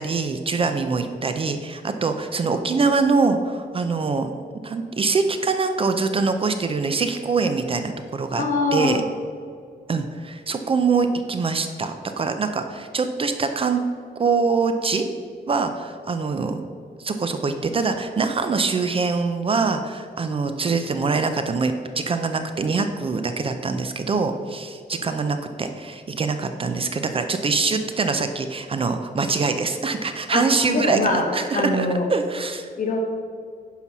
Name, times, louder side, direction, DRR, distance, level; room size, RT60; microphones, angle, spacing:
voice 1, 0.0-4.3 4.6-8.4 8.7-9.0 9.9-13.8 14.2-15.1 15.5-16.6 17.0-32.7, right 4 dB, 30° right, 7 dB, 0.5 m, -24 dB
voice 2, 8.4-9.0 30.3-30.4 30.7-32.1 32.8-33.0, left 2 dB, 50° left, 1 dB, 1.7 m, -23 dB
9.8 x 5.7 x 6.0 m, 2.2 s
wide cardioid pair, 165°, 17 cm